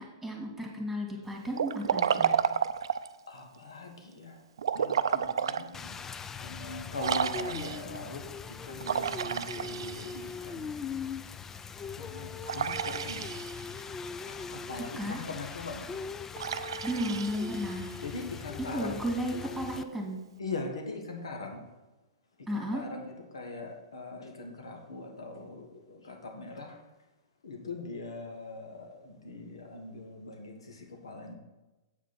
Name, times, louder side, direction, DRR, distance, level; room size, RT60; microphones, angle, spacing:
voice 1, 0.0-2.4 14.7-15.2 16.8-17.9 18.6-20.2 22.5-22.9, equal, 5° right, 0 dB, 2.3 m, -34 dB
Liquid, 1.5-3.2 4.6-5.7 6.2-6.3 7.0-8.0 8.8-10.4 12.5-13.8 16.4-18.0, right 8 dB, 70° right, 0.4 m, -31 dB
voice 2, 3.3-4.4 4.8-5.9 6.4-8.2 8.6-10.8 12.0-13.3 14.3-14.4 14.7-15.9 18.0-19.0 20.4-21.6 22.5-26.8 27.4-31.3, left 3 dB, 80° left, 2 dB, 1.6 m, -41 dB
Rain, 5.7-19.8, left 5 dB, 15° left, 0.4 m, -41 dB
8.0 x 5.0 x 6.1 m, 1.1 s
hypercardioid pair, 120°, 3 cm